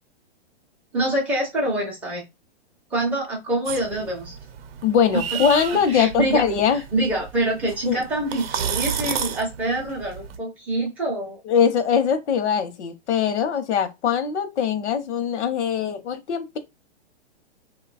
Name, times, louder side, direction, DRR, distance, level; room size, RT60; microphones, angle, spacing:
voice 1, 0.9-2.2 2.9-4.4 5.9-6.4 6.7-11.4, right 1 dB, 5° right, 0.4 m, -25 dB
sound 1, 3.6-10.4, right 8 dB, 60° right, 0.6 m, -32 dB
voice 2, 4.8-6.8 7.9-8.0 11.4-16.6, left 7 dB, 85° left, 0.8 m, -22 dB
2.9 x 2.2 x 2.4 m
hypercardioid pair, 155°, 34 cm